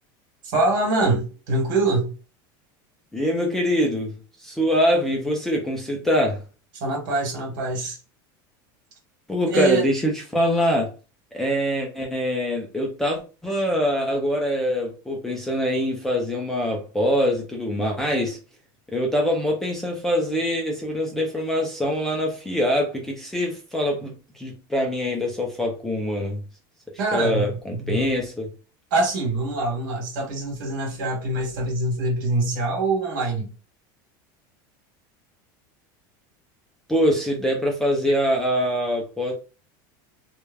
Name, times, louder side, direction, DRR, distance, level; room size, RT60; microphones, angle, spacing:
voice 1, 0.4-2.1 6.7-8.0 9.5-9.9 27.0-28.0 28.9-33.5, right 2 dB, 65° right, 1.4 m, -24 dB
voice 2, 3.1-6.4 9.3-10.9 11.3-18.4 18.9-26.4 27.1-28.5 36.9-39.3, equal, 5° left, 0.3 m, -24 dB
3.2 x 2.1 x 2.2 m
supercardioid pair, 175°, 11 cm